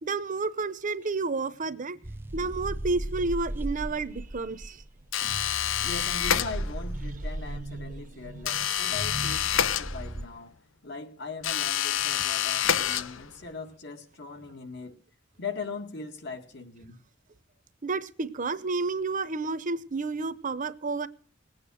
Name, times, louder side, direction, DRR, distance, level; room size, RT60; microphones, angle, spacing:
voice 1, 0.0-2.0 2.3-4.8 7.0-8.7 9.1-9.3 17.8-21.1, right 3 dB, 40° right, 0.8 m, -31 dB
sound 1, 2.0-10.3, right 1 dB, 10° right, 0.6 m, -37 dB
sound 2, 5.1-6.9 8.4-10.4 11.4-13.5, left 9 dB, 90° left, 0.7 m, -28 dB
voice 2, 5.8-10.6 10.8-15.0 15.4-17.0, left 4 dB, 60° left, 2.0 m, -40 dB
19.5 x 8.8 x 6.3 m
head